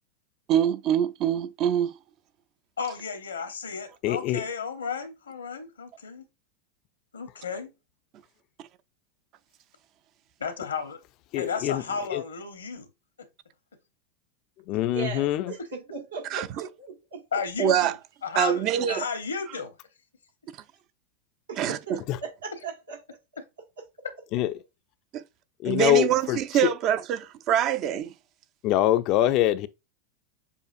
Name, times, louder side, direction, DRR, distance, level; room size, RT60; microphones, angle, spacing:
voice 1, 0.5-1.9 16.3-16.5 17.6-18.0 18.4-19.0 21.6-22.0 25.1-25.2 25.6-28.1, right 10 dB, 45° right, 0.5 m, -24 dB
voice 2, 2.8-6.3 7.1-7.7 10.4-11.0 11.4-12.9 17.3-17.9 18.2-19.8, left 5 dB, 80° left, 0.8 m, -33 dB
voice 3, 4.0-4.4 11.3-11.8 12.1-12.2 14.7-15.5 22.1-22.2 24.3-24.5 25.6-26.4 28.6-29.7, left 13 dB, 45° left, 0.4 m, -24 dB
voice 4, 14.8-17.2 21.5-21.9 22.2-23.0, right 5 dB, 80° right, 1.3 m, -38 dB
6.9 x 2.5 x 2.5 m
figure-of-eight pair, 85°, 0 cm